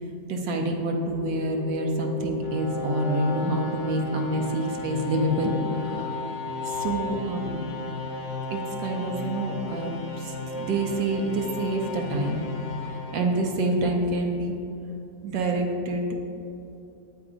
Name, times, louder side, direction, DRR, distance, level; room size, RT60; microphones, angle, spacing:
voice 1, 0.3-6.2 6.6-7.6 8.5-12.5 12.9-14.5 15.2-16.0, right 1 dB, 80° right, 2 dB, 1.4 m, -27 dB
sound 1, 0.9-14.0, left 3 dB, 50° left, 1.0 m, -34 dB
8.6 x 3.6 x 4.9 m, 2.8 s
omnidirectional pair, 2.0 m